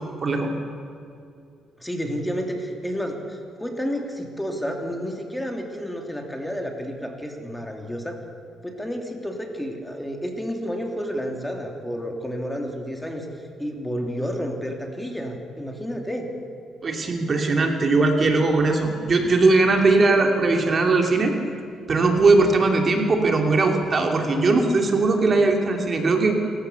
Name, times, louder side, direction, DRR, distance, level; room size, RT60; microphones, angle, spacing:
voice 1, 1.8-8.1 8.6-13.3 13.6-16.3, equal, 5° left, 2 dB, 3.0 m, -30 dB
voice 2, 16.8-21.3 21.9-26.4, right 3 dB, 40° right, 3 dB, 2.7 m, -19 dB
27.0 x 15.0 x 7.0 m, 2.5 s
cardioid pair, 90°, 0 cm